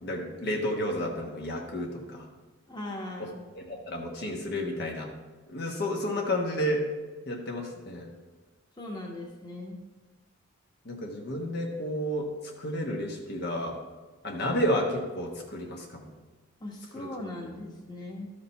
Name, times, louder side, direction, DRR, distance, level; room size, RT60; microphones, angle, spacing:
voice 1, 0.0-2.3 3.6-5.1 5.5-6.8 7.3-8.1 10.8-12.3 12.6-13.8 14.2-16.0 17.0-17.1, equal, 50° left, 0 dB, 1.2 m, -31 dB
voice 2, 2.7-3.4 8.8-9.8 16.6-18.3, left 1 dB, 20° left, -1 dB, 1.3 m, -39 dB
13.0 x 5.1 x 4.2 m, 1.3 s
head